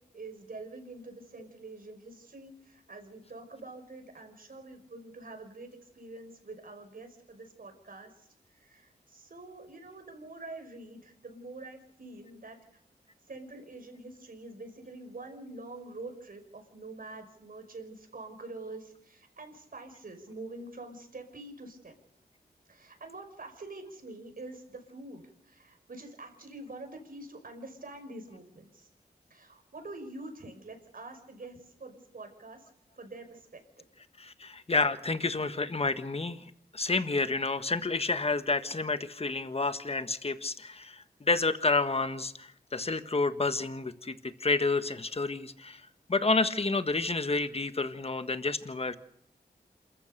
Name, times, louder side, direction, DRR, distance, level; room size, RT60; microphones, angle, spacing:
voice 1, 0.1-12.6 13.3-21.9 22.7-28.9 29.3-32.7 33.0-33.8, right 2 dB, 60° right, 6 dB, 5.5 m, -46 dB
voice 2, 34.2-36.5 36.7-49.0, left 3 dB, 35° left, 10 dB, 1.5 m, -30 dB
27.5 x 14.5 x 6.8 m, 0.74 s
cardioid pair, 60°, 17 cm